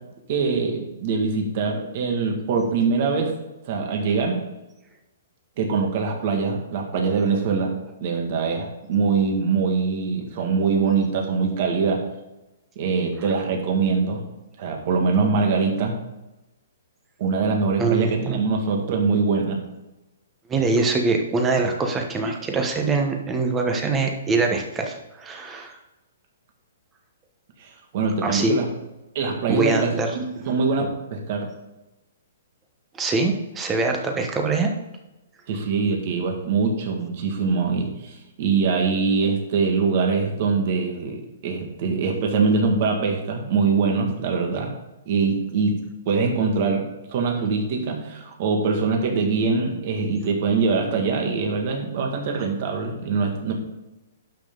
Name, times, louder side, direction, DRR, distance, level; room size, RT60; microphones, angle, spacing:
voice 1, 0.3-3.3 3.7-4.4 5.6-7.7 8.0-12.0 12.8-14.2 14.6-16.0 17.2-19.6 27.6-28.7 29.1-31.5 35.5-44.7 45.1-45.8 46.1-53.5, right 4 dB, 40° right, 2 dB, 1.9 m, -23 dB
voice 2, 17.8-18.4 20.5-25.8 28.2-28.5 29.5-30.1 32.9-34.7, right 3 dB, 10° right, 3 dB, 1.1 m, -23 dB
11.5 x 5.7 x 3.9 m, 1.0 s
hypercardioid pair, 165°, 0 cm